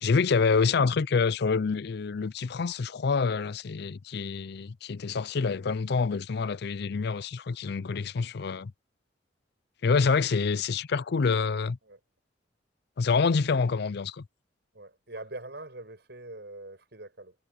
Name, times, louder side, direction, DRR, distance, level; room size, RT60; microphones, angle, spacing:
voice 1, 0.0-8.7 9.8-11.8 13.0-14.2, left 5 dB, 60° left, 0.5 m, -27 dB
voice 2, 14.7-17.4, right 2 dB, 65° right, 7.8 m, -43 dB
head